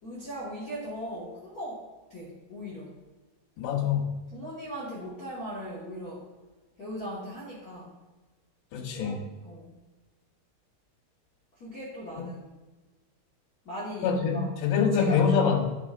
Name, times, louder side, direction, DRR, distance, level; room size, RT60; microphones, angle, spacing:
voice 1, 0.0-3.0 4.3-6.3 6.8-8.0 8.9-9.8 11.6-12.6 13.6-15.3, equal, 65° left, -6 dB, 0.9 m, -39 dB
voice 2, 3.6-4.1 8.7-9.2 14.0-15.6, left 6 dB, 85° left, 1 dB, 3.3 m, -25 dB
13.0 x 6.2 x 2.5 m, 1.2 s
omnidirectional pair, 4.7 m